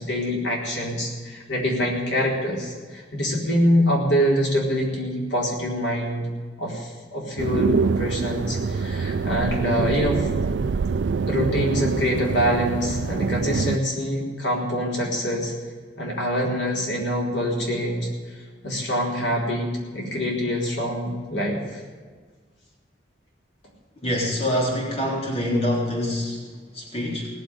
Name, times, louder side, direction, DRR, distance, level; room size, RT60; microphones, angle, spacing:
voice 1, 0.0-6.3 6.6-10.3 11.3-15.5 16.0-21.8, equal, 80° left, -2 dB, 4.5 m, -25 dB
sound 1, 7.4-13.8, right 5 dB, 70° right, 0.4 m, -25 dB
voice 2, 24.0-27.3, left 1 dB, 35° left, -2 dB, 3.8 m, -25 dB
18.0 x 7.7 x 9.9 m, 1.5 s
head